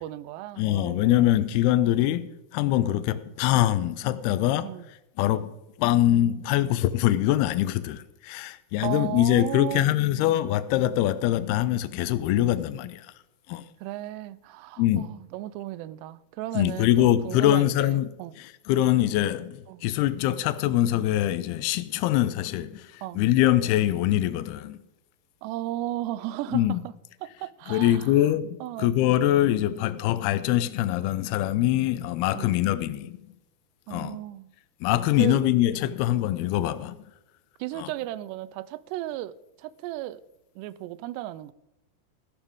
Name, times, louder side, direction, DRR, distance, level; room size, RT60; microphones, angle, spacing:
voice 1, 0.0-1.4 4.6-4.9 8.8-10.3 13.8-18.4 19.7-19.8 23.0-23.2 25.4-26.9 27.2-28.3 28.6-28.9 32.3-32.5 33.9-34.5 35.2-35.4 37.6-40.2 40.6-41.5, right 14 dB, 85° right, 2.7 m, -35 dB
voice 2, 0.6-4.7 5.2-5.5 5.8-13.1 13.5-13.6 14.8-15.1 16.5-18.1 18.4-24.8 26.5-26.8 27.7-33.2 33.9-34.2 34.8-37.0 37.8-37.9, left 13 dB, 80° left, 2.5 m, -23 dB
15.0 x 12.0 x 3.6 m
omnidirectional pair, 4.8 m